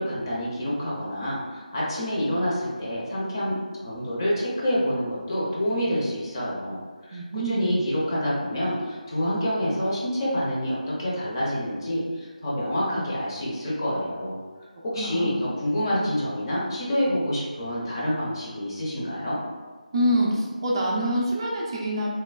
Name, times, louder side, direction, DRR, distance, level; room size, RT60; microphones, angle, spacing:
voice 1, 0.0-3.6 3.8-6.8 7.0-14.4 14.8-19.4, equal, 30° left, -6 dB, 0.6 m, -27 dB
voice 2, 7.1-7.7 15.0-15.3 19.9-22.1, equal, 35° right, -3 dB, 0.4 m, -25 dB
3.2 x 2.1 x 2.3 m, 1.4 s
figure-of-eight pair, 160°, 4 cm